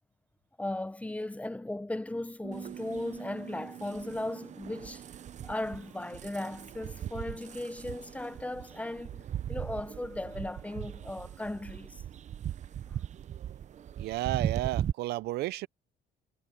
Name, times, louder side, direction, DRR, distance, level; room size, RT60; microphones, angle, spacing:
voice 1, 0.6-5.1 5.4-12.0 12.9-13.0, left 1 dB, 10° left, 0.8 m, -37 dB
sound 1, 2.4-8.7, right 10 dB, 60° right, 3.1 m, -50 dB
sound 2, 2.5-14.9, right 10 dB, 45° right, 0.7 m, -39 dB
voice 2, 14.0-15.7, right 17 dB, 75° right, 0.5 m, -32 dB
cardioid pair, 110°, 17 cm